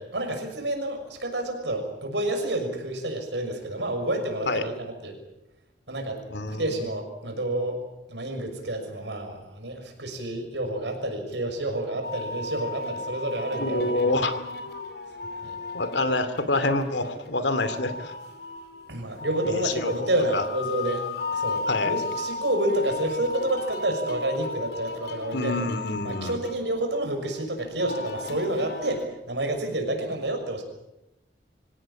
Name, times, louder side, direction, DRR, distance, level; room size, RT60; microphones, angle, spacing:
voice 1, 0.0-5.2 5.9-6.2 6.6-7.8 8.1-14.0 15.4-15.6 18.9-21.1 21.3-25.6 26.0-30.6, right 1 dB, 85° right, 4 dB, 6.4 m, -29 dB
voice 2, 6.3-6.9 13.6-14.3 15.7-18.1 19.4-20.4 21.7-21.9 25.3-26.4, left 2 dB, 85° left, 11 dB, 2.5 m, -27 dB
sound 1, 12.0-29.1, left 3 dB, 65° left, 2.8 m, -35 dB
26.0 x 17.0 x 8.8 m, 0.91 s
head